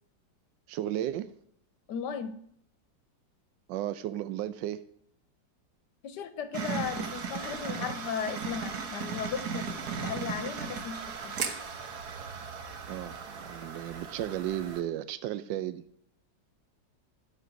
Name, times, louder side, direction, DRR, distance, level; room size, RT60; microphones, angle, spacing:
voice 1, 0.7-1.3 3.7-4.8 12.9-15.8, right 12 dB, 85° right, 14 dB, 1.3 m, -34 dB
voice 2, 1.9-2.4 6.0-11.3, left 7 dB, 70° left, 11 dB, 1.5 m, -36 dB
sound 1, 6.5-14.8, right 6 dB, 60° right, 1.6 m, -37 dB
12.0 x 6.9 x 6.0 m, 0.68 s
omnidirectional pair, 2.0 m